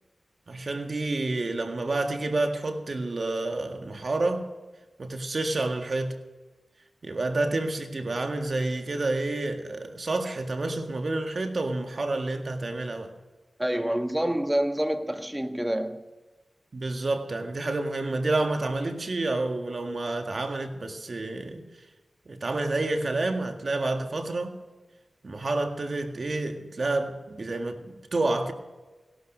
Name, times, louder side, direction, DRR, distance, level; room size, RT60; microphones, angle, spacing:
voice 1, 0.5-4.5 5.0-6.2 7.0-13.1 16.7-21.6 22.3-24.5 25.2-28.5, right 2 dB, 60° right, 1.8 m, -29 dB
voice 2, 13.6-16.0, right 1 dB, 10° right, 1.5 m, -27 dB
17.5 x 12.0 x 5.2 m
cardioid pair, 45°, 0 cm